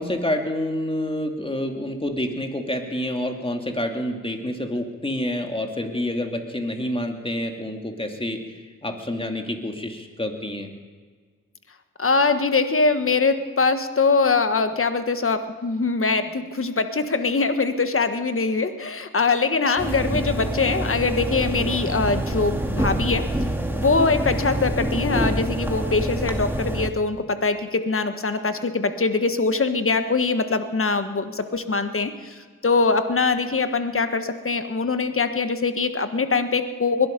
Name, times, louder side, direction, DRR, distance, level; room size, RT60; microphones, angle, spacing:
voice 1, 0.0-8.4 8.8-10.7, left 1 dB, 15° left, 3 dB, 2.6 m, -28 dB
voice 2, 12.0-23.3 23.8-37.1, left 4 dB, 40° left, 9 dB, 1.5 m, -23 dB
sound 1, 19.8-26.9, right 1 dB, 5° right, 2.1 m, -26 dB
21.5 x 12.0 x 5.3 m, 1.5 s
cardioid pair, 55°, 33 cm